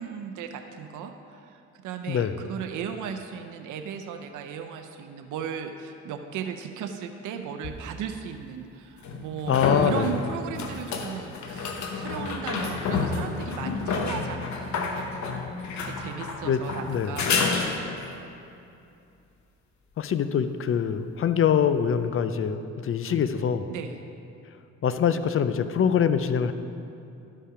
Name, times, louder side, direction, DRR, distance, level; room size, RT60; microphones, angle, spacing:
voice 1, 0.0-1.5 1.8-14.9 15.7-17.5 23.7-24.0, right 7 dB, 80° right, 6 dB, 0.6 m, -36 dB
sound 1, 7.6-7.7 9.0-18.2 21.6-21.7, left 4 dB, 70° left, 1.1 m, -30 dB
voice 2, 9.5-10.1 16.4-16.6 16.9-17.2 20.0-23.7 24.8-26.5, left 8 dB, 45° left, 11 dB, 0.5 m, -24 dB
12.0 x 5.5 x 4.9 m, 2.7 s
cardioid pair, 90°, 30 cm